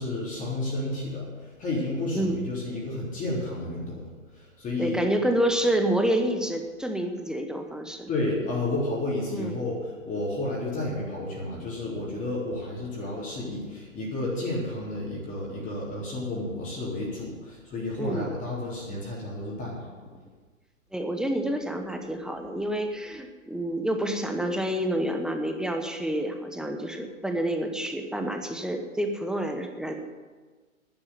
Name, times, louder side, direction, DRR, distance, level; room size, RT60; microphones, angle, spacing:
voice 1, 0.0-4.1 4.3-5.0 8.1-19.9, left 2 dB, 20° left, -4 dB, 3.7 m, -31 dB
voice 2, 4.8-8.1 9.3-9.5 18.0-18.3 20.9-29.9, right 1 dB, ahead, 5 dB, 1.0 m, -28 dB
11.0 x 9.8 x 9.5 m, 1.4 s
figure-of-eight pair, 115°, 40 cm